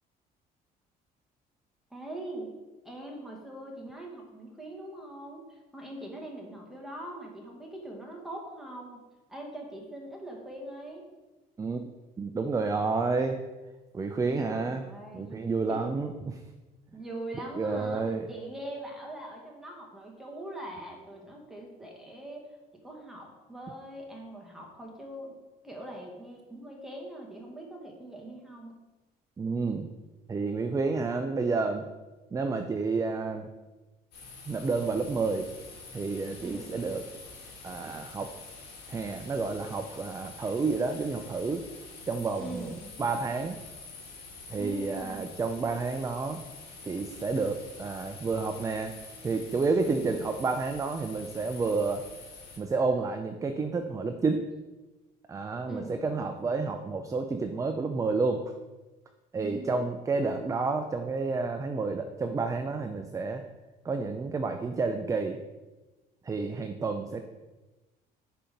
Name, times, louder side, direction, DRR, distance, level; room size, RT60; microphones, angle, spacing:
voice 1, 1.9-2.5 2.8-9.0 9.3-11.1 14.3-15.8 16.9-18.0 18.3-22.5 22.8-25.3 25.6-28.8 36.4-36.7 42.4-43.0 44.6-45.3 49.8-50.1 55.7-56.1 59.4-59.9, right 1 dB, ahead, -1 dB, 1.5 m, -42 dB
voice 2, 12.2-13.4 13.9-14.9 15.1-16.4 17.6-18.3 29.4-29.9 30.3-31.8 32.3-33.5 34.5-35.5 35.9-37.1 37.6-38.3 38.9-41.6 42.1-42.7 43.0-43.6 44.5-46.4 46.8-48.9 49.2-52.0 52.6-54.4 55.3-58.6 59.3-63.4 63.8-65.4 66.2-67.2, right 4 dB, 20° right, 6 dB, 0.4 m, -30 dB
sound 1, 34.1-52.6, left 3 dB, 75° left, 2.0 m, -47 dB
5.1 x 4.4 x 5.1 m, 1.1 s
cardioid pair, 110°, 17 cm